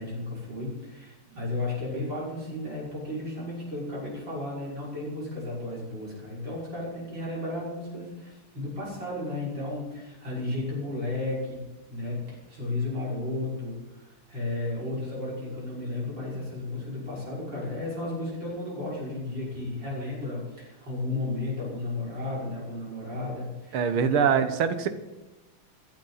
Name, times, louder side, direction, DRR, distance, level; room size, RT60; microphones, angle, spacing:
voice 1, 0.0-11.6 11.9-24.2, left 2 dB, 55° right, -6 dB, 6.7 m, -33 dB
voice 2, 23.7-24.9, right 7 dB, 75° right, 10 dB, 1.9 m, -23 dB
21.0 x 12.0 x 4.1 m, 1.1 s
omnidirectional pair, 2.4 m